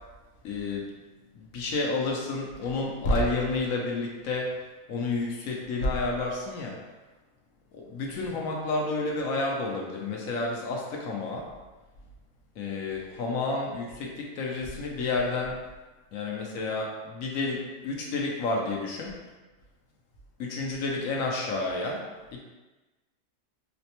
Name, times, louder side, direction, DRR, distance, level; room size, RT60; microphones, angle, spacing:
voice 1, 0.4-0.9 1.4-4.5 4.9-6.8 7.9-11.5 12.6-15.6 16.1-19.2 20.4-22.4, left 3 dB, 75° left, -1 dB, 1.0 m, -30 dB
4.1 x 2.1 x 2.8 m, 1.2 s
omnidirectional pair, 1.5 m